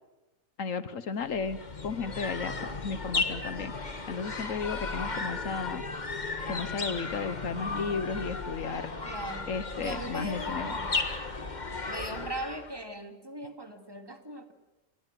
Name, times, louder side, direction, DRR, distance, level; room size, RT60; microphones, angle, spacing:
voice 1, 0.6-1.6 1.8-3.7 4.1-5.9 6.5-8.9 9.5-10.7, left 5 dB, 70° left, 14 dB, 1.4 m, -34 dB
sound 1, 1.2-12.8, left 3 dB, 35° left, 1.7 m, -35 dB
voice 2, 9.0-9.5 9.8-11.0 11.9-14.5, right 1 dB, 15° right, 6 dB, 2.3 m, -39 dB
30.0 x 20.0 x 7.7 m, 1.0 s
omnidirectional pair, 1.4 m